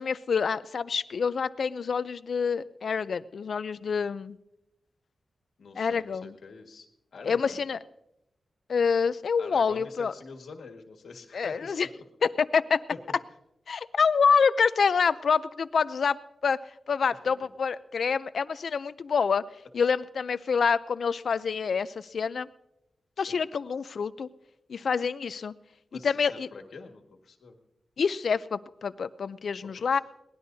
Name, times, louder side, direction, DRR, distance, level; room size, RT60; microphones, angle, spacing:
voice 1, 0.0-4.4 5.8-6.3 7.2-7.8 8.7-10.1 11.3-11.9 12.4-12.8 13.7-16.2 16.4-16.6 16.9-19.4 19.7-22.5 23.2-24.3 24.7-25.5 26.0-26.5 28.0-30.0, left 6 dB, 60° left, 15 dB, 0.5 m, -27 dB
voice 2, 5.6-6.9 7.1-7.6 9.4-12.0 17.1-17.5 23.2-23.4 25.9-27.6 29.8-30.0, left 4 dB, 85° left, 3 dB, 1.8 m, -45 dB
22.5 x 18.5 x 2.7 m, 0.88 s
wide cardioid pair, 180°, 0 cm